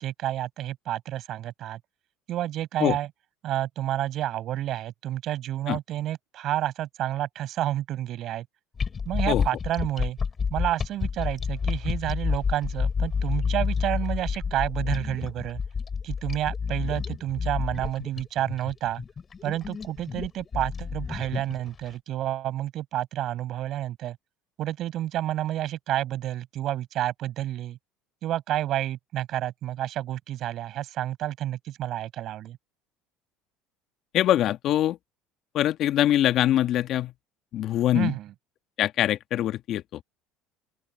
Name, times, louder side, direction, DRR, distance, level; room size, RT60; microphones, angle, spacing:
voice 1, 0.0-1.8 2.3-3.1 3.4-8.4 9.0-10.2 10.5-15.6 16.0-19.0 19.4-24.2 24.6-27.8 28.2-32.6 37.9-38.3, right 13 dB, 55° right, 6.5 m, -30 dB
sound 1, 8.8-21.9, left 5 dB, 30° left, 3.3 m, -29 dB
voice 2, 34.1-35.0 35.5-37.1 37.5-38.1 38.8-39.8, left 12 dB, 55° left, 1.6 m, -23 dB
open air
hypercardioid pair, 75°, 0 cm